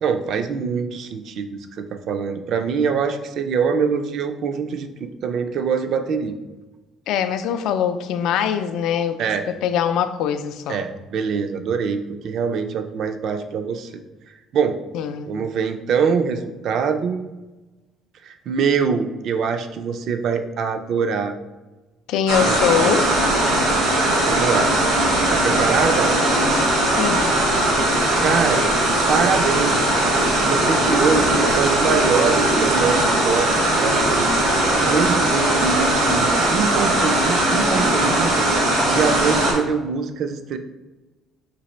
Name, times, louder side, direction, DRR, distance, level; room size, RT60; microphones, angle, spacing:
voice 1, 0.0-6.4 9.2-9.5 10.7-13.9 14.5-14.8 15.2-17.2 18.2-21.3 22.4-22.5 22.8-23.0 24.1-24.7 25.3-26.1 28.2-28.7 29.1-29.8 30.5-34.3 34.8-38.5 38.8-40.6, right 6 dB, 55° right, 8 dB, 0.4 m, -24 dB
voice 2, 7.1-9.2 9.5-10.8 14.9-15.3 22.1-23.1 27.0-27.3, left 8 dB, 75° left, 10 dB, 0.3 m, -22 dB
sound 1, 22.3-39.5, right 1 dB, 90° right, 1.4 m, -19 dB
4.0 x 2.8 x 4.3 m, 1.1 s
cardioid pair, 150°, 0 cm